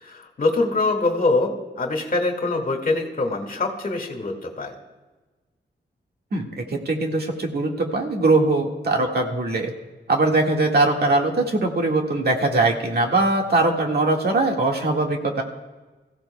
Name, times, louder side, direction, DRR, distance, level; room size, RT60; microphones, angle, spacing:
voice 1, 0.0-4.7, left 2 dB, 50° left, 3 dB, 2.0 m, -24 dB
voice 2, 6.3-9.7 10.1-15.4, right 2 dB, 60° right, 1 dB, 1.8 m, -21 dB
25.0 x 15.5 x 2.3 m, 1.2 s
wide cardioid pair, 155°, 19 cm